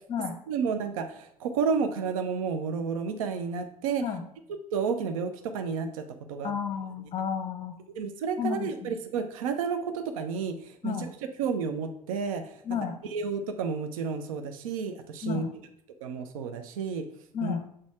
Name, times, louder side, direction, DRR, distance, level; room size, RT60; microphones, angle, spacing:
voice 1, 0.5-4.0 4.7-6.5 7.9-11.1 11.4-12.6 13.1-15.6 16.0-17.0 17.4-17.5, right 5 dB, 65° right, 7 dB, 0.7 m, -31 dB
voice 2, 6.4-7.8 8.4-9.0 10.8-11.1 12.7-13.0 15.2-15.5 17.3-17.6, left 7 dB, 25° left, 8 dB, 0.7 m, -32 dB
7.5 x 4.1 x 4.7 m, 0.74 s
figure-of-eight pair, 65°, 19 cm